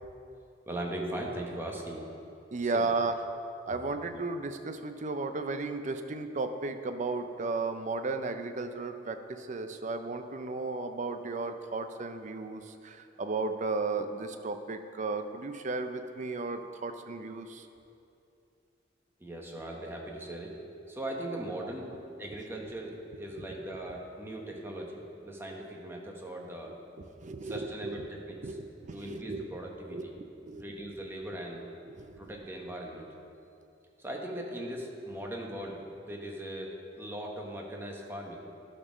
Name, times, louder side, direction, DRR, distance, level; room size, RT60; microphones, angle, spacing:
voice 1, 0.7-2.0 2.6-2.9 19.2-20.5 20.9-21.9 22.2-26.7 27.4-28.6 28.9-30.2 30.6-31.6 32.2-33.1 34.0-38.4, right 1 dB, 15° right, 0 dB, 1.1 m, -39 dB
voice 2, 2.5-3.2 3.7-17.7 27.0-28.1 28.4-29.5 29.9-30.0 30.5-30.6 31.9-32.2, right 3 dB, 40° right, 8 dB, 0.5 m, -34 dB
12.0 x 4.4 x 6.1 m, 2.6 s
head